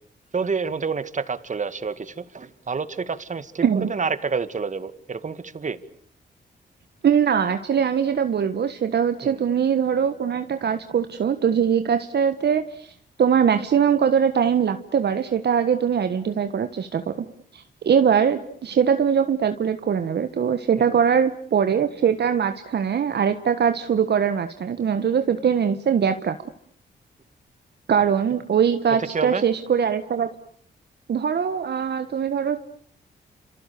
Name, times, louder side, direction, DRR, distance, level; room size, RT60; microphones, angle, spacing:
voice 1, 0.3-5.8 9.2-9.4 20.9-21.0 29.0-29.4, right 5 dB, 40° right, 12 dB, 2.2 m, -28 dB
voice 2, 7.0-12.9 13.2-17.3 17.5-26.5 27.9-30.3 31.1-32.6, right 7 dB, 65° right, 9 dB, 1.4 m, -22 dB
29.0 x 27.0 x 6.9 m, 0.62 s
cardioid pair, 75°, 19 cm